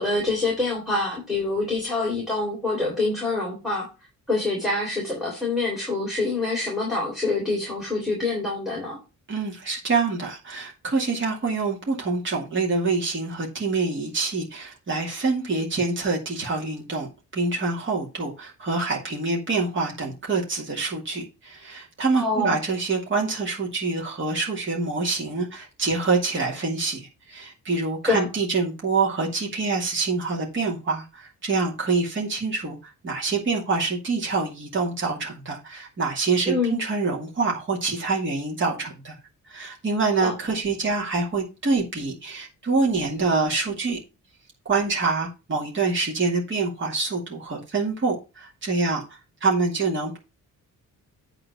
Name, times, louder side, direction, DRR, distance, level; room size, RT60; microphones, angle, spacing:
voice 1, 0.0-3.9 4.3-9.0 22.1-22.6 28.1-28.3 36.5-36.8 40.2-40.3, left 3 dB, ahead, 3.4 m, -26 dB
voice 2, 9.3-17.1 17.3-39.2 39.5-44.0 44.6-50.2, right 4 dB, 35° right, 2.4 m, -26 dB
9.0 x 3.9 x 6.7 m
wide cardioid pair, 155°, 33 cm